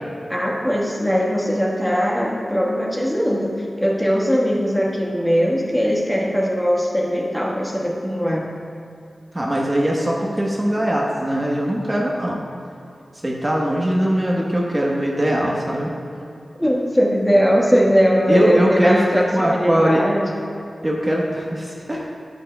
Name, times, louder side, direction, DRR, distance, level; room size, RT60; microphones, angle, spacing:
voice 1, 0.3-8.5 16.6-20.3, equal, 10° left, -3 dB, 1.3 m, -20 dB
voice 2, 9.3-12.4 13.2-15.9 18.3-20.0 20.8-22.0, right 1 dB, 25° right, -3 dB, 1.1 m, -20 dB
10.0 x 9.2 x 2.2 m, 2.5 s
wide cardioid pair, 65°, 0 cm